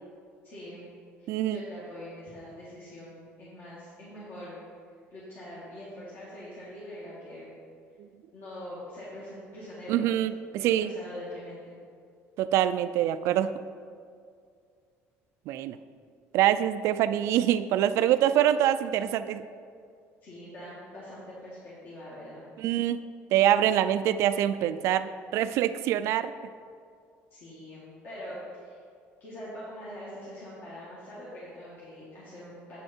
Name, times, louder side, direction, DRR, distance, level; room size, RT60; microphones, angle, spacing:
voice 1, 0.4-0.8 1.2-4.6 5.1-7.5 8.3-10.1 10.6-11.7 20.2-22.4 27.3-28.8 29.2-32.8, left 1 dB, 40° left, -9 dB, 2.0 m, -43 dB
voice 2, 1.3-1.6 9.9-10.9 12.4-13.5 15.5-15.8 16.3-19.4 22.6-23.0 23.3-26.3, right 11 dB, 65° right, 12 dB, 0.3 m, -25 dB
8.2 x 6.5 x 4.4 m, 2.2 s
cardioid pair, 155°, 5 cm